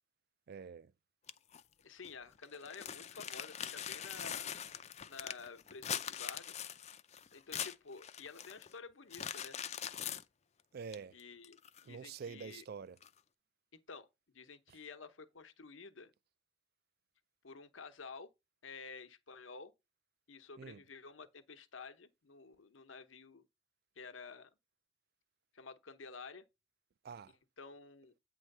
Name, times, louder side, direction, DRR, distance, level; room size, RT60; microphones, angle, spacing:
voice 1, 0.5-0.9 10.7-11.2 11.8-13.0 14.7-14.8 20.6-20.8 27.0-27.3, right 6 dB, 50° right, 0.4 m, -47 dB
sound 1, 1.3-1.6 2.0-2.1 2.4-8.7 9.1-10.2 10.9-11.0 11.4-12.1 13.0-13.1, left 9 dB, 35° left, 0.4 m, -42 dB
voice 2, 1.8-4.5 5.1-6.6 7.3-9.6 11.1-12.6 13.7-14.1 14.3-16.1 17.4-18.3 18.6-19.7 20.3-23.5 24.0-24.5 25.5-26.5 27.6-28.1, left 4 dB, 75° left, 0.9 m, -51 dB
8.8 x 3.1 x 6.5 m
head